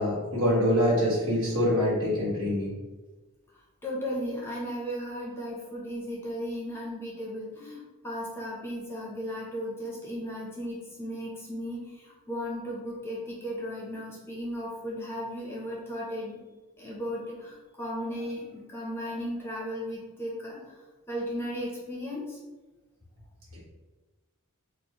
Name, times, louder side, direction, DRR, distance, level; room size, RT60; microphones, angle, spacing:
voice 1, 0.0-2.7 23.5-23.6, equal, 65° right, -6 dB, 1.4 m, -25 dB
voice 2, 3.8-16.4 16.8-20.7 21.1-22.4, equal, 10° left, -5 dB, 0.6 m, -35 dB
4.3 x 2.1 x 2.8 m, 1.2 s
head